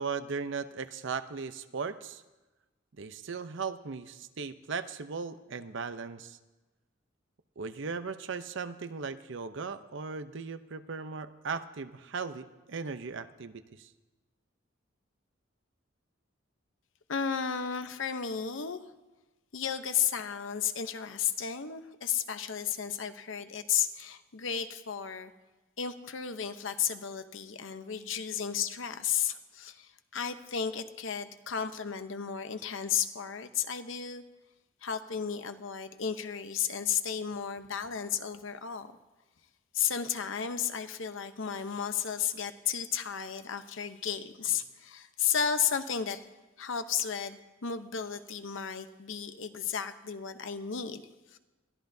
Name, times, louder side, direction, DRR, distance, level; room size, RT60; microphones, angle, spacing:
voice 1, 0.0-2.2 3.0-6.4 7.6-13.9, right 5 dB, 65° right, 11 dB, 0.7 m, -37 dB
voice 2, 17.1-18.8 19.5-25.3 25.8-34.2 34.8-38.9 39.7-46.2 46.6-51.0 51.3-51.4, left 8 dB, 70° left, 9 dB, 0.8 m, -33 dB
22.0 x 14.0 x 2.7 m, 1.1 s
head